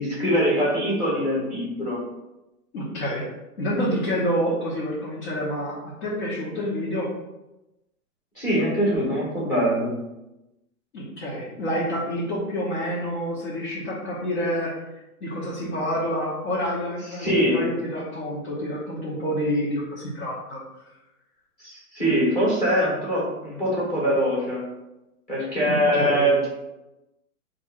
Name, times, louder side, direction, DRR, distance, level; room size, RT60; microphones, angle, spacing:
voice 1, 0.0-2.0 8.3-9.9 17.2-17.7 21.6-24.7 25.3-26.5, equal, 15° left, -7 dB, 1.1 m, -23 dB
voice 2, 2.7-3.3 3.6-7.1 10.9-14.8 15.2-20.6 25.7-26.3, equal, 50° left, -7 dB, 1.1 m, -28 dB
3.0 x 2.6 x 4.4 m, 0.97 s
hypercardioid pair, 170°, 44 cm